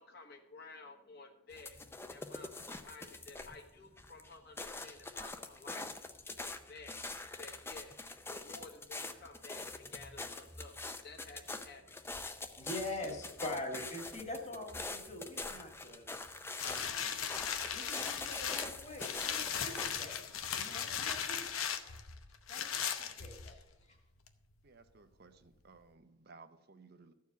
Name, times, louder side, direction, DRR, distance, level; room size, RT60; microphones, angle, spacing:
voice 1, 0.0-7.0 7.4-12.5, left 3 dB, 50° left, 3 dB, 1.3 m, -54 dB
sound 1, 1.5-3.7 4.0-19.9, left 3 dB, 10° left, 0.5 m, -44 dB
voice 2, 12.6-16.1 16.6-17.2 17.7-22.0 22.5-23.6 23.9-24.0, left 2 dB, 35° left, 2 dB, 1.9 m, -44 dB
sound 2, 16.6-23.7 24.3-24.4, left 8 dB, 90° left, 0.9 m, -38 dB
voice 3, 24.6-27.1, right 4 dB, 50° right, 9 dB, 0.6 m, -58 dB
13.5 x 4.7 x 8.1 m, 0.97 s
head